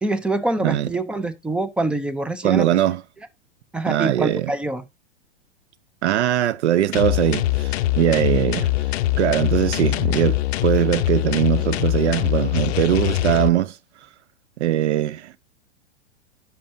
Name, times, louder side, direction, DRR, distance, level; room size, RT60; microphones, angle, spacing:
voice 1, 0.0-2.7 3.7-4.8 8.1-8.2, right 2 dB, 5° right, 0.3 m, -25 dB
voice 2, 2.4-3.0 3.9-4.5 6.0-8.7 9.2-13.8 14.6-15.4, right 13 dB, 70° right, 0.5 m, -21 dB
sound 1, 6.9-13.5, left 15 dB, 65° left, 0.5 m, -22 dB
10.0 x 5.7 x 2.5 m
hypercardioid pair, 105°, 35 cm